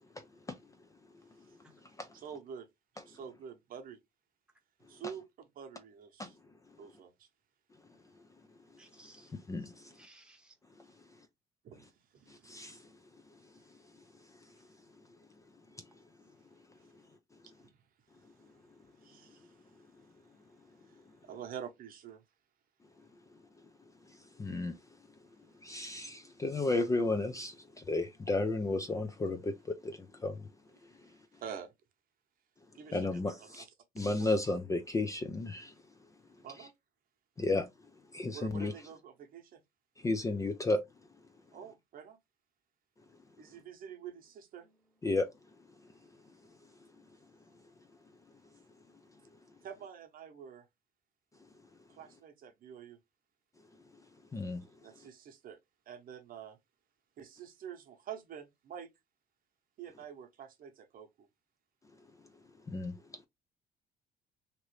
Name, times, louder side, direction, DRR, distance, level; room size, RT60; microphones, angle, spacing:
voice 1, 2.1-2.7 3.1-4.0 4.9-6.4 6.8-7.3 11.6-11.8 12.1-12.3 17.6-17.7 19.0-19.6 21.2-22.2 31.4-31.7 32.7-33.7 34.0-34.5 36.4-36.7 38.3-39.6 41.5-42.2 43.4-44.7 49.6-50.7 51.9-53.0 54.8-55.6 55.9-56.6 57.2-58.9 59.8-61.3, right 8 dB, 55° right, 0.9 m, -47 dB
voice 2, 8.8-9.3 10.0-10.5, right 2 dB, 5° right, 0.9 m, -58 dB
voice 3, 9.3-9.9 12.4-12.8 24.4-24.8 25.6-30.4 32.9-33.7 34.0-35.7 37.4-37.7 38.1-38.7 40.0-40.8 45.0-45.3 54.3-54.6 62.7-63.0, left 2 dB, 20° left, 0.4 m, -33 dB
2.9 x 2.6 x 3.1 m
cardioid pair, 110°, 17 cm